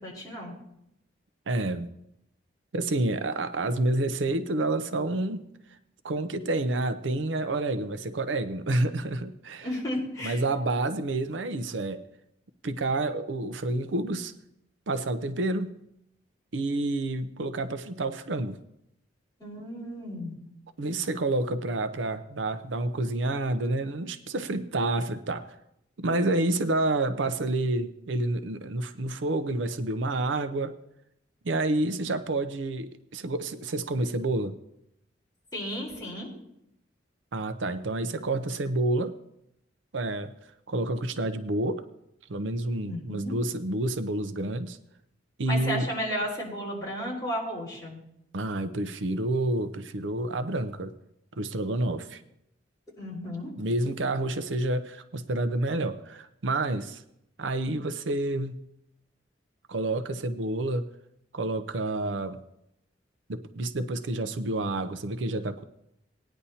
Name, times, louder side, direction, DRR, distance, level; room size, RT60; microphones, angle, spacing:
voice 1, 0.0-0.5 9.6-10.4 19.4-20.4 35.5-36.3 42.8-43.3 45.5-48.0 53.0-53.5, equal, 20° left, -5 dB, 4.2 m, -33 dB
voice 2, 1.5-1.9 2.7-5.5 6.0-9.7 10.2-12.0 12.6-14.3 14.9-15.8 16.5-18.6 20.8-25.5 26.0-30.8 31.4-34.6 37.3-39.2 39.9-40.4 40.7-41.8 42.3-44.8 45.4-45.9 48.3-50.9 51.4-52.2 53.6-57.0 57.4-58.6 59.7-60.9 61.3-62.4 63.3-65.6, right 2 dB, 80° right, 10 dB, 0.6 m, -29 dB
18.5 x 10.0 x 2.8 m, 0.79 s
head